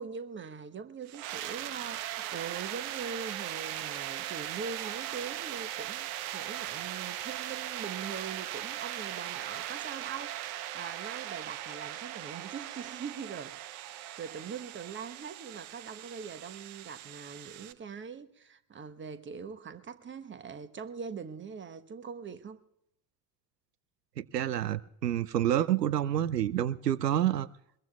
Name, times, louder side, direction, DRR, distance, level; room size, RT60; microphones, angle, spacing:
voice 1, 0.0-22.6, right 6 dB, 25° right, 1.1 m, -42 dB
sound 1, 1.1-17.7, right 13 dB, 65° right, 0.9 m, -39 dB
voice 2, 24.2-27.5, right 11 dB, 85° right, 0.5 m, -28 dB
22.5 x 22.0 x 2.3 m
figure-of-eight pair, 60°, 47 cm